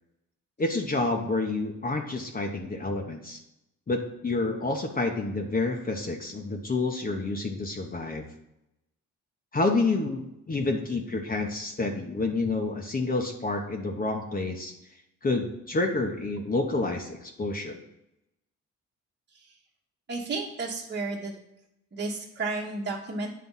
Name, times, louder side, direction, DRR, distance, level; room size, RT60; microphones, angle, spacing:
voice 1, 0.6-3.4 3.9-8.2 9.5-14.7 15.2-17.8, left 3 dB, 30° left, 2 dB, 1.0 m, -29 dB
voice 2, 20.1-21.3 21.9-23.3, right 3 dB, 35° right, -3 dB, 1.3 m, -32 dB
9.4 x 3.4 x 5.5 m, 0.86 s
cardioid pair, 90°, 30 cm